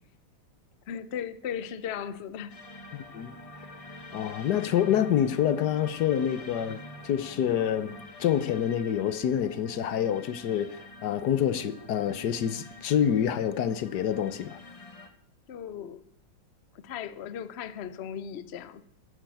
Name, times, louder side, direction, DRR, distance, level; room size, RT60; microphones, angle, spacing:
voice 1, 0.9-2.6 15.5-16.0 16.8-18.9, left 8 dB, 80° left, 0.5 m, -37 dB
sound 1, 2.5-15.1, left 2 dB, 25° left, 0.8 m, -46 dB
voice 2, 2.9-3.3 4.1-7.9 8.2-14.6, left 9 dB, 60° left, 1.3 m, -27 dB
11.0 x 10.5 x 7.8 m
omnidirectional pair, 2.2 m